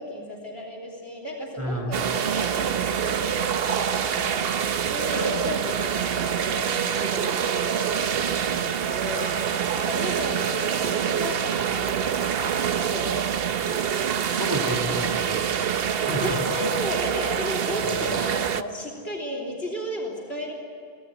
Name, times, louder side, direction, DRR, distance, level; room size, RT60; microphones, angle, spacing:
voice 1, 0.0-13.6 16.1-20.5, equal, 80° left, -2 dB, 3.7 m, -34 dB
voice 2, 1.6-2.0 14.4-16.4 17.8-18.0, equal, 20° right, 2 dB, 2.6 m, -31 dB
sound 1, 1.9-18.6, right 8 dB, 70° right, 1.0 m, -26 dB
25.0 x 17.5 x 9.8 m, 2.4 s
omnidirectional pair, 1.0 m